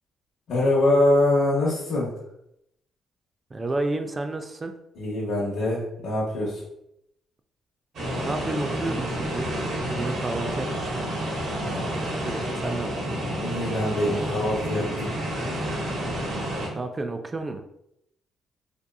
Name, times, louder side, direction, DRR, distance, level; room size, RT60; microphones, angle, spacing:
voice 1, 0.5-2.1 4.9-6.6 11.6-11.9 13.4-15.1, left 1 dB, 75° left, -7 dB, 0.8 m, -24 dB
voice 2, 3.5-4.7 8.2-9.5 9.9-11.0 11.8-12.9 16.7-17.6, right 2 dB, 30° right, 6 dB, 0.3 m, -31 dB
sound 1, 7.9-16.7, right 1 dB, 70° right, 0.9 m, -29 dB
2.8 x 2.4 x 2.2 m, 0.79 s
cardioid pair, 90°, 0 cm